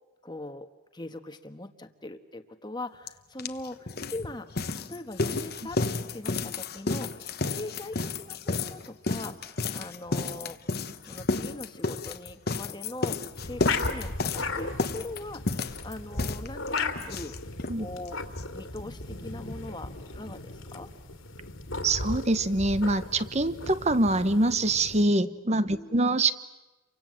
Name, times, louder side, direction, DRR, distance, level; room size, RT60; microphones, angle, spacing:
voice 1, 0.2-4.5 4.7-5.8 6.1-10.6 11.0-15.5 15.8-17.4 17.8-18.2 18.5-20.9 25.7-26.1, left 2 dB, 20° left, 8 dB, 1.3 m, -41 dB
sound 1, 3.1-3.2 3.4-17.8 18.1-18.2 18.4-18.5 18.8-18.9, left 3 dB, 50° left, 1.1 m, -32 dB
sound 2, 13.3-25.1, left 3 dB, 75° left, 2.4 m, -36 dB
voice 2, 21.8-26.3, right 2 dB, 35° right, 13 dB, 1.0 m, -24 dB
30.0 x 24.5 x 7.7 m, 1.1 s
head